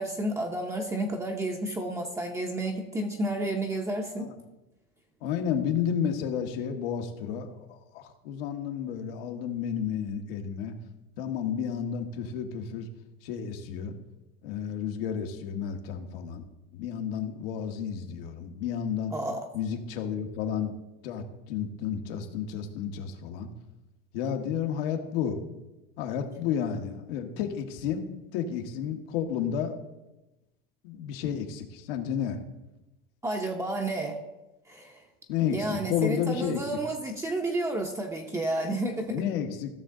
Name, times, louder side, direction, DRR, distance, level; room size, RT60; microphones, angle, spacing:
voice 1, 0.0-4.3 19.1-19.4 33.2-34.1 34.7-35.0 35.5-39.2, right 1 dB, 10° right, 2 dB, 0.7 m, -31 dB
voice 2, 5.2-10.8 11.2-12.9 13.2-13.9 14.4-16.4 16.7-19.1 19.5-20.8 21.0-23.5 24.1-25.4 26.0-28.1 28.3-29.8 30.8-32.4 35.3-36.6 39.1-39.7, left 8 dB, 75° left, 5 dB, 1.4 m, -31 dB
15.0 x 6.5 x 3.8 m, 1.0 s
supercardioid pair, 150°, 29 cm